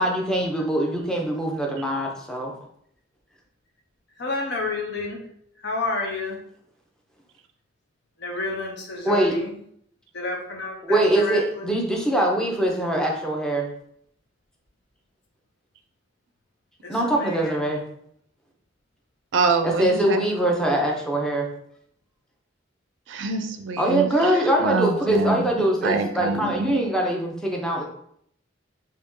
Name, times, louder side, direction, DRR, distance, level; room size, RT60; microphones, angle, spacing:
voice 1, 0.0-2.5 9.0-9.3 10.8-13.7 16.9-17.8 19.6-21.5 23.8-27.8, right 1 dB, 5° left, 0 dB, 0.6 m, -23 dB
voice 2, 4.2-5.2 5.6-6.4 8.2-9.5 10.1-11.7 16.8-17.7 20.2-20.5, left 2 dB, 60° left, 1 dB, 0.8 m, -30 dB
voice 3, 19.3-20.3 23.1-25.5 25.8-26.7, right 4 dB, 70° right, 7 dB, 0.4 m, -25 dB
2.9 x 2.8 x 3.6 m, 0.68 s
head